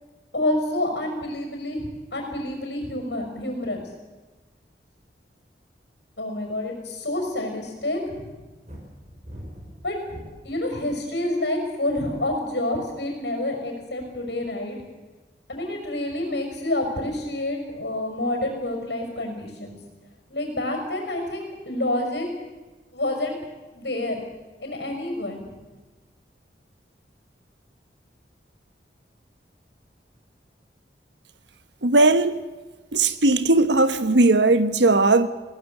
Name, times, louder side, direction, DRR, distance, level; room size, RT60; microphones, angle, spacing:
voice 1, 0.3-3.8 6.2-8.2 9.8-10.0 10.4-14.8 15.5-19.8 20.3-22.3 22.9-23.4 23.7-24.2 24.6-25.4, left 1 dB, 75° left, 5.7 m, -28 dB
sound 1, 8.7-10.6 11.3-11.7, equal, 40° right, 6.6 m, -41 dB
voice 2, 31.8-32.3 32.9-35.3, right 2 dB, 85° right, 1.3 m, -18 dB
21.5 x 18.5 x 8.1 m
head